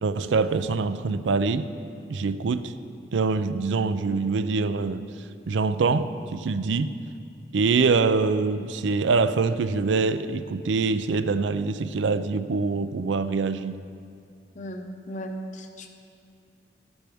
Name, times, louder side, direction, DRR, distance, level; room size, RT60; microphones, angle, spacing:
voice 1, 0.0-1.7 2.1-2.7 3.1-5.0 5.5-6.9 7.5-13.8, right 4 dB, 90° right, 12 dB, 0.4 m, -24 dB
voice 2, 14.5-15.9, equal, 40° left, 5 dB, 0.8 m, -36 dB
12.5 x 10.5 x 3.5 m, 2.4 s
head